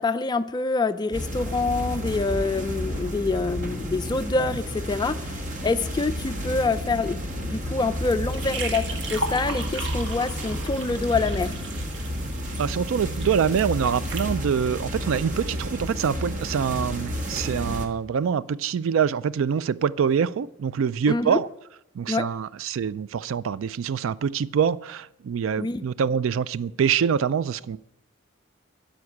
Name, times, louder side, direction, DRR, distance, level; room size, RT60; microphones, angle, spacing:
voice 1, 0.0-11.6 21.1-21.4 22.1-22.3 25.6-25.8, left 3 dB, 20° left, 11 dB, 0.3 m, -26 dB
sound 1, 1.1-17.9, equal, 40° right, 1.4 m, -31 dB
sound 2, 8.0-14.4, right 2 dB, 60° right, 1.5 m, -36 dB
voice 2, 12.6-21.5 21.9-27.8, right 7 dB, 80° right, 18 dB, 0.4 m, -25 dB
12.5 x 5.3 x 8.5 m, 0.85 s
head